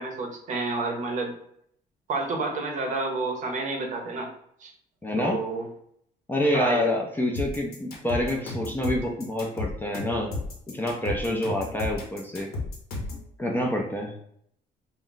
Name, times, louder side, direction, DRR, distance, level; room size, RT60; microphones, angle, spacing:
voice 1, 0.0-1.3 2.1-4.3 4.6-4.7 5.2-5.7 6.5-6.9, right 3 dB, 45° right, 2 dB, 0.7 m, -29 dB
voice 2, 5.0-5.4 6.3-10.3 10.7-12.5 13.4-14.1, left 1 dB, 10° left, 0 dB, 0.4 m, -27 dB
sound 1, 7.4-13.3, left 2 dB, 65° left, 0.9 m, -33 dB
2.3 x 2.1 x 3.8 m, 0.68 s
cardioid pair, 110°, 17 cm